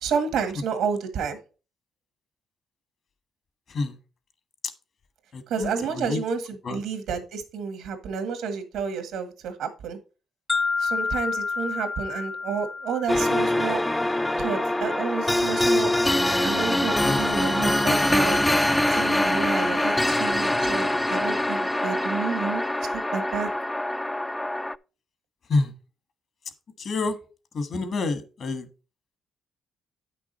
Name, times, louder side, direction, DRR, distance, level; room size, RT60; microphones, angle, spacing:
voice 1, 0.0-1.4 5.5-10.0 10.8-13.8 14.4-15.9 16.4-18.4 18.9-22.6 23.1-23.5, right 6 dB, 85° right, 8 dB, 1.6 m, -30 dB
voice 2, 5.3-6.2 6.6-6.8 17.0-17.2 25.5-25.7 26.8-27.2 27.5-28.6, left 3 dB, 55° left, 10 dB, 1.3 m, -27 dB
sound 1, 10.5-14.5, left 4 dB, 30° left, 0.7 m, -30 dB
sound 2, 13.1-24.8, left 1 dB, 10° left, 0.3 m, -24 dB
8.9 x 6.0 x 4.1 m, 0.34 s
cardioid pair, 90°, 0 cm